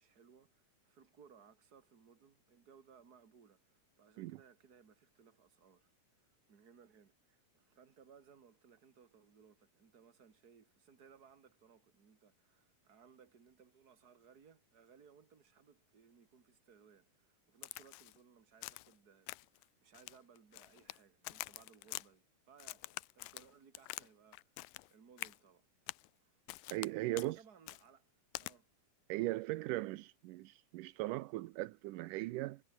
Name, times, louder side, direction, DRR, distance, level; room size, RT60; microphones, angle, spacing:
voice 1, 0.0-25.7 26.2-26.4 27.1-28.1 28.4-28.7, right 6 dB, 30° right, 2.6 m, -64 dB
Crack, 17.6-18.2 18.6-18.9 19.3-19.6 20.0-21.0 21.3-22.1 22.6-24.1 24.3-24.9 25.2-25.4 25.9-26.1 26.5-26.9 27.2-27.3 27.7-27.8 28.4-28.5, left 21 dB, 90° left, 2.3 m, -46 dB
voice 2, 26.7-27.4 29.1-32.6, right 18 dB, 85° right, 2.2 m, -38 dB
omnidirectional pair, 3.8 m